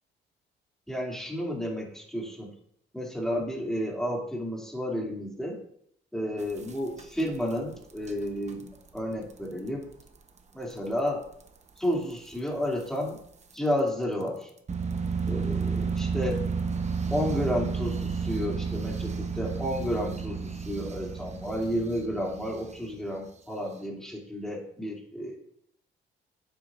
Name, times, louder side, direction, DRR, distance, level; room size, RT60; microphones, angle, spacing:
voice 1, 0.9-2.5 2.9-5.6 6.1-9.9 10.5-11.3 11.8-13.2 13.5-14.5 15.3-16.5 17.1-25.4, equal, ahead, -3 dB, 2.7 m, -31 dB
sound 1, 6.4-7.5 7.9-8.1 8.5-8.7 9.0-9.1 9.3-9.4 10.0-10.1 10.9-11.0 11.4-11.5 12.8-12.9 13.5-13.6 14.7-23.0, right 5 dB, 35° right, 0.9 m, -32 dB
9.2 x 7.3 x 2.6 m, 0.68 s
cardioid pair, 90°, 20 cm